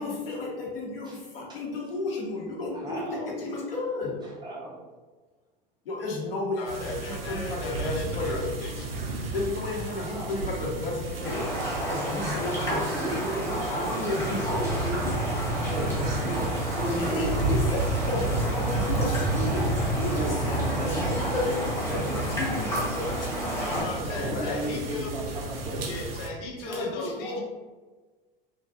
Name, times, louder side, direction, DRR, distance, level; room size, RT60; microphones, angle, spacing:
voice 1, 0.0-4.1 5.9-8.5 9.3-11.5 11.8-13.2 13.7-14.6 17.0-24.7 26.6-27.4, left 2 dB, 75° left, -2 dB, 0.7 m, -33 dB
voice 2, 2.7-3.4 4.2-4.9 9.9-10.4 12.6-17.5 19.0-19.1 20.1-20.5 20.8-21.1 21.5-21.6 23.9-25.9, right 1 dB, 15° right, -4 dB, 0.3 m, -36 dB
voice 3, 6.6-8.9 23.6-25.1 25.9-27.4, left 2 dB, 45° left, -1 dB, 0.7 m, -37 dB
sound 1, 6.7-26.3, right 2 dB, 80° right, 0.5 m, -31 dB
Raindrop, 11.2-23.8, equal, 10° left, 0.7 m, -32 dB
2.5 x 2.2 x 2.5 m, 1.3 s
figure-of-eight pair, 80°, 29 cm